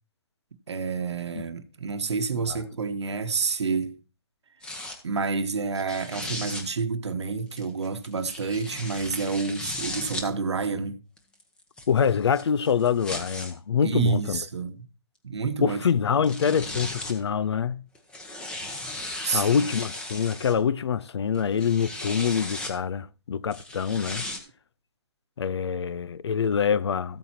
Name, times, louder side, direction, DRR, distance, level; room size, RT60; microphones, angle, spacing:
voice 1, 0.7-3.9 5.0-11.0 13.8-14.9 15.2-15.8 19.2-19.7, right 4 dB, 90° right, 1.2 m, -28 dB
sound 1, 4.6-5.0 5.7-6.6 7.6-10.3 11.2-13.5 14.4-14.5 15.9-16.0 16.2-17.2 18.0-20.5 21.3-22.7 23.5-24.4, left 2 dB, 5° left, 0.9 m, -36 dB
voice 2, 11.9-14.4 15.6-17.8 19.3-24.3 25.4-27.2, left 7 dB, 75° left, 0.6 m, -25 dB
14.0 x 8.8 x 2.9 m
hypercardioid pair, 165°, 14 cm